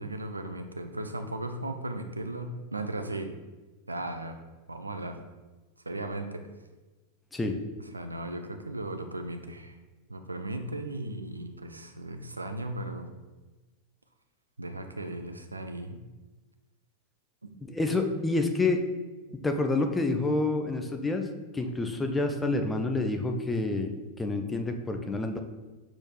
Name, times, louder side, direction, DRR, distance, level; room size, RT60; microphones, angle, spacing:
voice 1, 0.0-3.3 3.9-4.4 4.7-5.2 5.9-6.4 7.8-9.8 10.1-13.1 14.6-16.0, right 1 dB, 80° right, 6 dB, 0.4 m, -36 dB
voice 2, 17.6-18.8 19.3-21.3 21.5-23.9 24.2-25.4, left 2 dB, 10° left, 5 dB, 0.4 m, -28 dB
6.2 x 3.1 x 2.4 m, 1.2 s
figure-of-eight pair, 90°, 0 cm